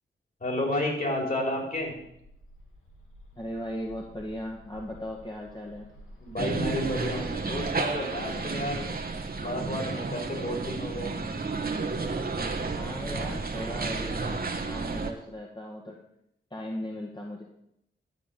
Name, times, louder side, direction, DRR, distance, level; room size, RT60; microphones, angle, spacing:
voice 1, 0.4-1.9 6.2-8.9 9.4-11.1, left 1 dB, 40° left, 0 dB, 4.6 m, -31 dB
Bird, 2.0-9.0, equal, 85° left, 2.5 m, -49 dB
voice 2, 3.4-5.9 12.6-16.0 16.5-17.4, equal, 20° left, -2 dB, 2.0 m, -37 dB
sound 1, 6.4-15.1, right 4 dB, 45° right, 1.5 m, -32 dB
12.0 x 4.9 x 8.7 m, 0.80 s
cardioid pair, 60°, 21 cm